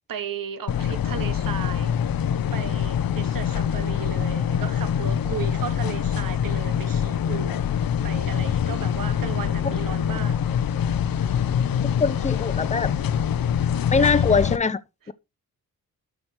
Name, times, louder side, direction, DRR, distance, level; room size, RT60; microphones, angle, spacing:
voice 1, 0.1-2.0 2.2-7.6 8.0-10.4 14.0-14.3, right 8 dB, 70° right, 1.5 m, -35 dB
sound 1, 0.7-14.6, left 8 dB, 80° left, 0.9 m, -24 dB
voice 2, 12.0-12.9 13.9-14.8, left 5 dB, 20° left, 0.7 m, -22 dB
13.0 x 5.2 x 6.0 m
wide cardioid pair, 135°, 35 cm